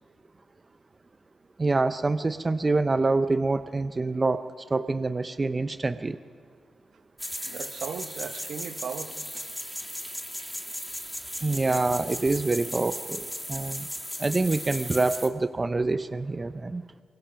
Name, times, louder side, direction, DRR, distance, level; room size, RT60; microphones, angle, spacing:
voice 1, 1.6-4.4 4.7-6.2 11.4-13.9 14.2-16.8, right 3 dB, 25° right, 0.6 m, -26 dB
sound 1, 7.2-15.3, equal, ahead, 1.6 m, -36 dB
voice 2, 7.4-9.5, right 7 dB, 70° right, 1.2 m, -37 dB
24.5 x 23.0 x 5.8 m
cardioid pair, 115°, 0 cm